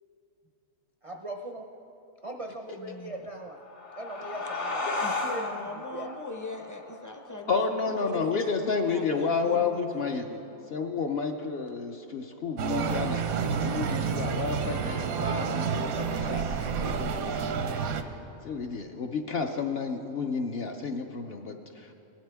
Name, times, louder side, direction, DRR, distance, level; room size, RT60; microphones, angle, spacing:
voice 1, 1.0-1.6 2.2-3.6 4.0-4.9 5.3-5.4 5.9-6.2, right 1 dB, 45° right, 1 dB, 0.4 m, -39 dB
voice 2, 2.8-3.2 4.8-10.4, left 2 dB, 25° left, 4 dB, 0.4 m, -41 dB
sound 1, 3.4-8.6, left 3 dB, 85° left, 2.8 m, -35 dB
voice 3, 7.5-10.4 10.7-13.2 13.6-17.5 18.4-21.9, left 5 dB, 60° left, 4 dB, 0.7 m, -31 dB
sound 2, 12.6-18.0, right 6 dB, 85° right, 1.2 m, -29 dB
19.0 x 11.5 x 3.4 m, 2.9 s
omnidirectional pair, 1.5 m